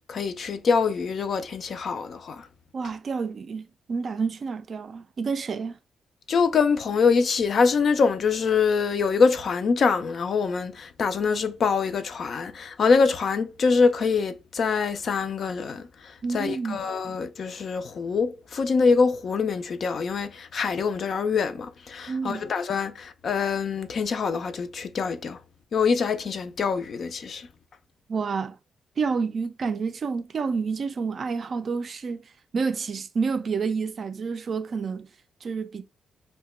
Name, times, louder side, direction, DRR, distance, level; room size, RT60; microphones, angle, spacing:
voice 1, 0.1-2.5 6.3-15.9 16.3-25.4 25.7-27.5, left 5 dB, 50° left, 0.4 m, -24 dB
voice 2, 2.7-5.8 16.2-16.9 22.1-22.5 28.1-28.6 29.0-32.2 32.5-35.1 35.4-35.8, right 5 dB, 45° right, 0.3 m, -29 dB
2.8 x 2.2 x 4.1 m
cardioid pair, 130°, 0 cm